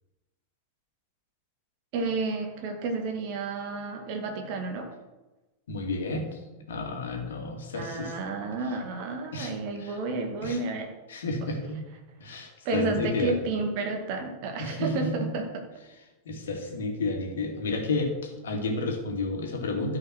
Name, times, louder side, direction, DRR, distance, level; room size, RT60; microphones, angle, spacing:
voice 1, 1.9-4.9 7.7-10.9 12.6-15.5, right 3 dB, 45° right, 3 dB, 2.1 m, -31 dB
voice 2, 5.7-6.4 6.7-8.2 9.3-9.5 9.8-10.0 10.4-10.6 11.1-11.8 12.2-13.4 14.6-15.3 16.3-20.0, left 2 dB, 65° left, 2 dB, 2.3 m, -31 dB
13.0 x 6.0 x 6.3 m, 1.1 s
figure-of-eight pair, 90°, 0 cm